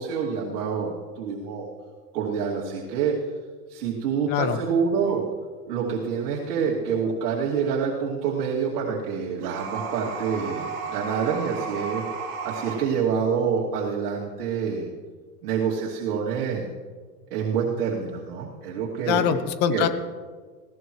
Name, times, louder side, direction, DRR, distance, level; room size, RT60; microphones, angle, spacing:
voice 1, 0.0-1.7 2.1-3.2 3.7-5.2 5.7-12.0 12.4-14.9 15.4-16.7 17.3-19.4 19.7-19.9, right 6 dB, 75° right, -4 dB, 2.7 m, -27 dB
voice 2, 4.3-4.6 19.0-19.9, left 8 dB, 20° left, 11 dB, 0.7 m, -23 dB
sound 1, 9.4-12.9, right 5 dB, 40° right, 2.8 m, -33 dB
20.5 x 17.0 x 3.1 m, 1.5 s
supercardioid pair, 165°, 46 cm